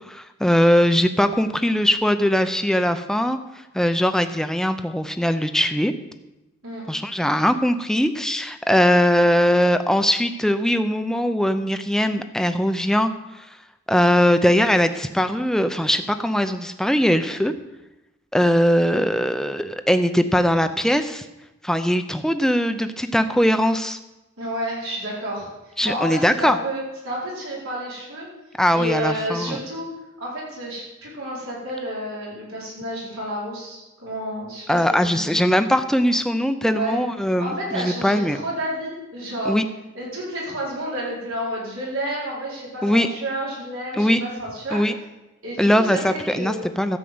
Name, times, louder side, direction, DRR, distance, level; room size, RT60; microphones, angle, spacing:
voice 1, 0.1-3.4 3.7-5.9 6.9-13.1 13.9-17.5 18.3-21.2 21.6-24.0 25.8-26.6 28.6-29.6 34.7-38.4 39.4-39.6 42.8-43.1 44.0-44.2 44.7-44.9 45.6-47.0, equal, 5° left, 8 dB, 0.6 m, -20 dB
voice 2, 24.4-25.5 25.8-28.3 28.7-29.9 30.2-35.4 36.6-37.0 37.4-39.5 39.9-44.8 45.4-46.7, right 1 dB, 85° right, -6 dB, 4.8 m, -30 dB
13.5 x 5.4 x 7.9 m, 1.0 s
head